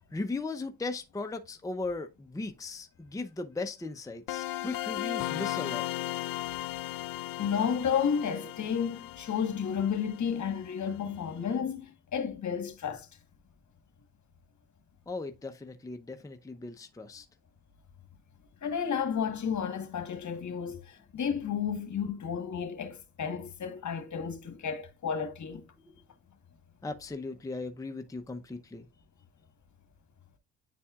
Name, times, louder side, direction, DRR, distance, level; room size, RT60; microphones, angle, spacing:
voice 1, 0.1-5.9 15.1-17.3 25.8-25.9 26.8-28.9, left 3 dB, 10° left, 0.7 m, -37 dB
sound 1, 4.3-10.9, left 16 dB, 75° left, 0.5 m, -36 dB
voice 2, 7.4-13.1 18.6-25.6, left 7 dB, 55° left, 1.3 m, -32 dB
9.7 x 4.2 x 2.4 m
supercardioid pair, 65°, 34 cm